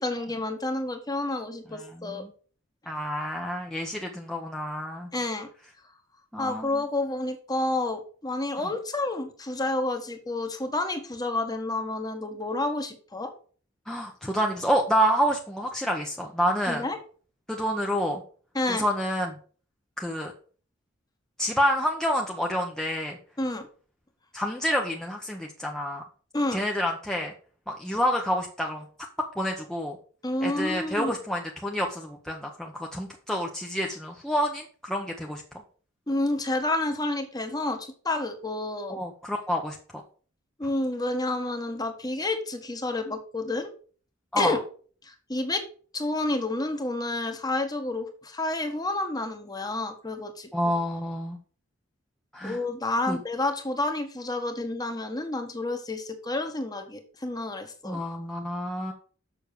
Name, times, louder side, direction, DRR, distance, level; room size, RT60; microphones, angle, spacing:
voice 1, 0.0-2.2 5.1-5.5 6.4-13.3 16.7-17.0 18.5-18.9 23.4-23.7 26.3-26.6 30.2-31.2 36.1-39.0 40.6-43.7 44.4-44.6 45.0-45.7 45.9-50.5 52.4-58.0, left 2 dB, 20° left, 6 dB, 1.4 m, -29 dB
voice 2, 1.8-2.3 2.9-5.1 6.3-6.7 13.9-16.8 17.5-18.2 18.7-19.3 20.0-20.3 21.4-23.2 24.3-26.0 26.5-27.3 27.7-28.8 29.4-30.0 30.4-35.4 38.9-39.8 44.3-44.6 50.5-51.4 52.3-52.6 53.1-53.2 57.8-58.9, equal, 5° left, 0 dB, 0.9 m, -28 dB
7.1 x 6.3 x 6.5 m, 0.43 s
head